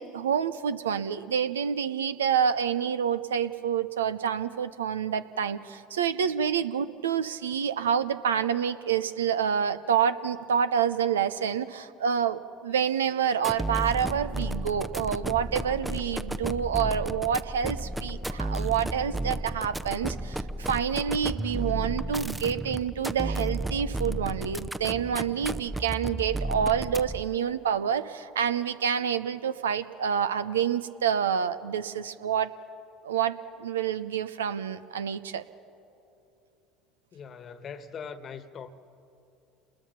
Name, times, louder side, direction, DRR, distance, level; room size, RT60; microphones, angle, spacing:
voice 1, 0.0-32.5 33.0-35.4, right 8 dB, 80° right, 0.6 m, -28 dB
sound 1, 13.4-27.4, right 1 dB, 5° right, 0.6 m, -33 dB
voice 2, 37.1-38.7, left 6 dB, 40° left, 1.4 m, -41 dB
29.0 x 21.0 x 5.8 m
hypercardioid pair, 70°, 0 cm